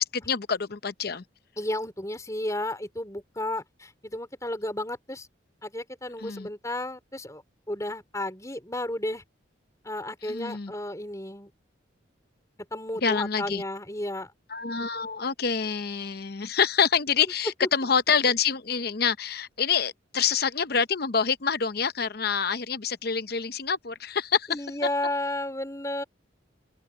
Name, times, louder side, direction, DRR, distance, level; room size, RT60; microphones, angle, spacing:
voice 1, 0.1-1.2 6.2-6.5 10.2-10.7 13.0-13.6 14.5-24.6, left 6 dB, 55° left, 0.8 m, -26 dB
voice 2, 1.6-5.3 5.6-7.4 7.7-9.2 9.8-11.5 12.7-14.3 17.6-17.7 24.5-26.0, left 1 dB, 15° left, 4.9 m, -32 dB
open air
head